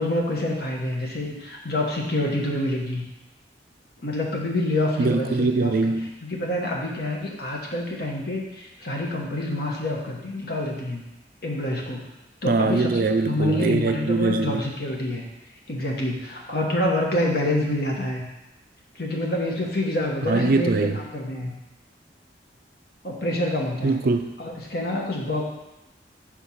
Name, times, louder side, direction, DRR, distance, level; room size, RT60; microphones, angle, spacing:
voice 1, 0.0-3.0 4.0-5.7 6.2-11.0 11.4-12.1 12.4-12.9 13.2-15.2 15.7-18.2 18.9-21.5 23.0-24.0 24.4-25.4, left 1 dB, 60° left, -1 dB, 1.2 m, -27 dB
voice 2, 5.0-6.1 12.5-14.6 20.3-21.0 23.8-24.3, right 3 dB, 55° right, 8 dB, 0.4 m, -22 dB
4.8 x 4.5 x 5.6 m, 0.94 s
head